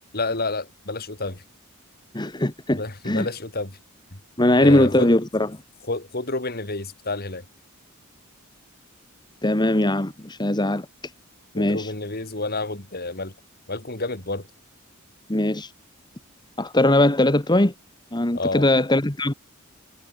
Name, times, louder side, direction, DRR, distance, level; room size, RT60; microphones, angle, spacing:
voice 1, 0.1-1.4 2.7-3.7 4.1-4.2 4.6-5.1 5.9-7.4 11.5-13.3 13.7-14.5 18.3-18.7, left 2 dB, 45° left, 3.6 m, -29 dB
voice 2, 2.1-3.3 4.4-5.5 9.4-10.9 11.5-11.9 15.3-15.7 16.6-17.7 18.1-19.3, left 1 dB, 20° left, 1.5 m, -20 dB
head